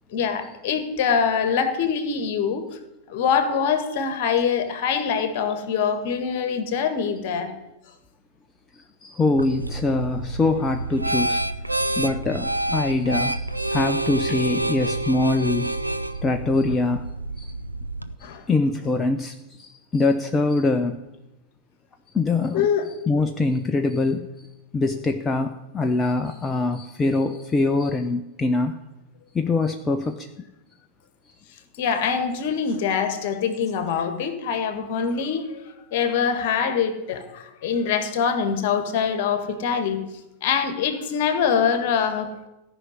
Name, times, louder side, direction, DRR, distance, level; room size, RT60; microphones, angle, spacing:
voice 1, 0.1-2.6 3.1-7.5 18.2-18.4 22.5-22.9 31.8-40.0 40.4-42.5, left 6 dB, 50° left, 1.8 m, -24 dB
voice 2, 8.7-11.4 12.0-15.8 16.2-17.1 17.4-17.5 18.5-21.0 22.1-22.7 23.1-24.3 24.7-28.8 29.3-30.3, left 3 dB, 15° left, 0.7 m, -23 dB
sound 1, 9.3-18.1, right 2 dB, 85° right, 0.6 m, -28 dB
14.5 x 6.1 x 9.6 m
figure-of-eight pair, 90°, 0 cm